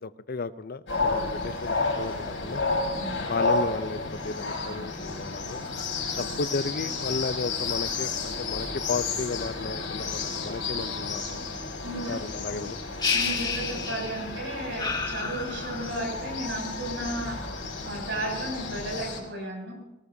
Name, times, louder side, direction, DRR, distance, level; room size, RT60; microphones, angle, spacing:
voice 1, 0.0-2.6 3.2-5.6 6.2-11.4 12.0-12.8, left 4 dB, 55° left, 14 dB, 0.6 m, -34 dB
sound 1, 0.9-19.2, left 3 dB, 75° left, 5.9 m, -32 dB
voice 2, 11.8-12.2 13.1-17.4 17.8-19.7, right 1 dB, 70° right, 0 dB, 7.1 m, -34 dB
sound 2, 13.0-14.3 14.8-16.0, left 5 dB, 25° left, 2.0 m, -30 dB
23.0 x 19.0 x 2.8 m, 0.98 s
head